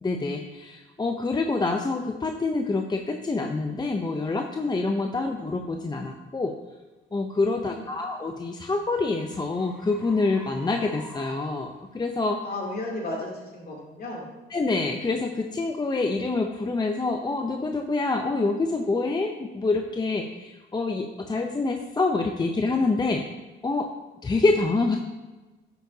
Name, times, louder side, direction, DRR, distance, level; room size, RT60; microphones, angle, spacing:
voice 1, 0.0-6.6 7.1-12.4 14.5-23.2 23.6-23.9 24.2-25.0, left 3 dB, 20° left, 4 dB, 0.6 m, -26 dB
sound 1, 3.5-3.6 4.2-4.4 5.0-5.2 7.8-12.3, equal, 5° right, 1.4 m, -48 dB
voice 2, 7.5-7.8 12.4-14.3, left 2 dB, 50° left, -3 dB, 3.0 m, -34 dB
10.0 x 7.8 x 2.8 m, 1.2 s
cardioid pair, 90°, 20 cm